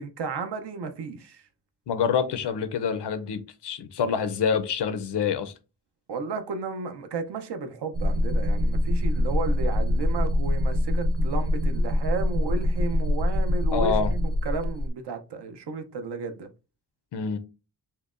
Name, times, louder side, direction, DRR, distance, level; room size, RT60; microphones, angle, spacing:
voice 1, 0.0-1.4 6.1-16.5, right 4 dB, 75° right, 0.7 m, -33 dB
voice 2, 1.9-5.5 13.7-14.1 17.1-17.4, left 6 dB, 85° left, 0.6 m, -26 dB
sound 1, 7.9-14.9, left 1 dB, 35° right, 0.4 m, -24 dB
5.6 x 2.1 x 2.4 m
wide cardioid pair, 130°, 41 cm